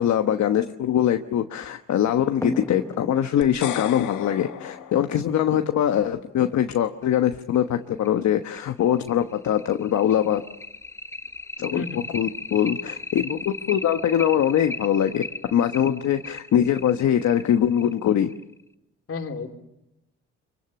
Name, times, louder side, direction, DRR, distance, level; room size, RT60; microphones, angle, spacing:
voice 1, 0.0-10.4 11.6-15.2 15.5-18.3, left 10 dB, 65° left, 7 dB, 1.2 m, -22 dB
sound 1, 2.4-5.6 7.0-7.1 7.5-7.6 8.0-8.1 8.6-18.6, left 1 dB, 10° left, 1.0 m, -36 dB
sound 2, 3.4-5.7, left 11 dB, 80° left, 1.4 m, -35 dB
voice 2, 11.7-12.0 19.1-19.5, left 4 dB, 45° left, 4 dB, 3.3 m, -32 dB
25.5 x 24.0 x 7.1 m, 0.88 s
cardioid pair, 90°, 30 cm